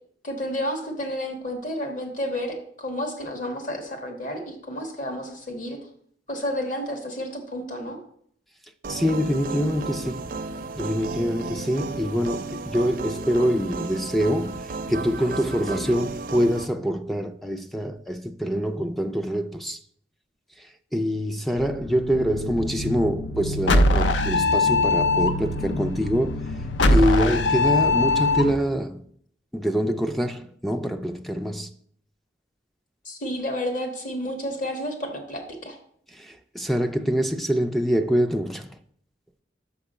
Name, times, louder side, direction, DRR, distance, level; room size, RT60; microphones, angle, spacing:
voice 1, 0.2-5.8 6.3-8.0 33.0-35.8, equal, 50° left, 1.4 m, -31 dB
sound 1, 8.8-16.7, right 3 dB, 55° right, 0.5 m, -33 dB
voice 2, 8.9-10.3 10.8-19.8 20.6-20.7 20.9-26.4 26.9-29.0 29.5-31.7 36.1-38.7, equal, ahead, 0.3 m, -25 dB
sound 2, 21.6-28.5, left 2 dB, 75° left, 0.5 m, -22 dB
6.1 x 5.9 x 5.2 m
head